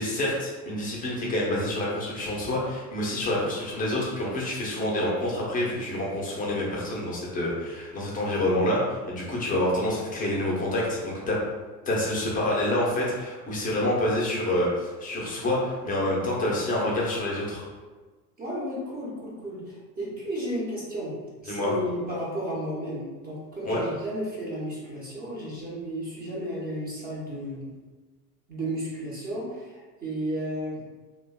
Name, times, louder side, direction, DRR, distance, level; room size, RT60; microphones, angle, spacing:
voice 1, 0.0-11.5 11.9-17.6 21.5-21.7 23.6-23.8, left 1 dB, 15° left, -4 dB, 0.6 m, -27 dB
voice 2, 18.4-21.1 21.4-27.7 28.5-30.8, equal, 20° right, -6 dB, 0.8 m, -33 dB
2.5 x 2.3 x 2.2 m, 1.3 s
figure-of-eight pair, 80°, 50 cm